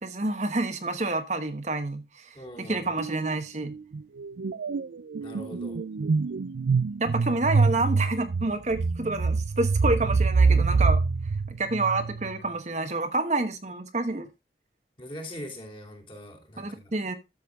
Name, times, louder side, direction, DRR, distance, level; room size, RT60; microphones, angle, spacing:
voice 1, 0.0-3.8 7.0-11.0 11.5-14.3 16.6-17.1, right 2 dB, 40° right, 1.1 m, -28 dB
voice 2, 2.3-2.9 5.2-5.8 15.0-16.9, equal, 30° left, 2.8 m, -41 dB
sound 1, 3.0-3.3 3.6-12.4, right 4 dB, 85° right, 0.5 m, -25 dB
12.5 x 7.2 x 3.5 m
head